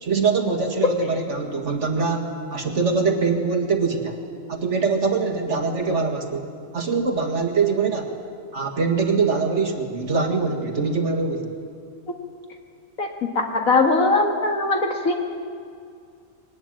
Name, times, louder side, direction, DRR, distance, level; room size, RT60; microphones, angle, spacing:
voice 1, 0.0-4.2 4.5-6.4 6.7-8.2 8.5-11.5, right 4 dB, 55° right, 4 dB, 2.2 m, -23 dB
voice 2, 13.4-15.1, left 3 dB, 75° left, 3 dB, 2.2 m, -20 dB
22.0 x 19.5 x 9.0 m, 2.3 s
omnidirectional pair, 1.5 m